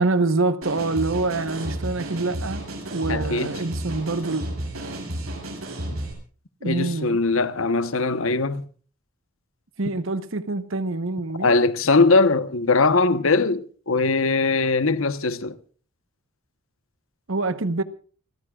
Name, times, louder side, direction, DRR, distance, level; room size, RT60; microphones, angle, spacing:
voice 1, 0.0-2.6 2.9-4.4 6.6-7.2 9.8-11.6 17.3-17.8, right 3 dB, 65° right, 1.1 m, -25 dB
sound 1, 0.6-6.1, right 1 dB, 85° right, 7.5 m, -32 dB
voice 2, 3.1-3.5 6.6-8.6 11.4-15.6, left 3 dB, 70° left, 1.1 m, -21 dB
29.5 x 15.0 x 2.4 m
head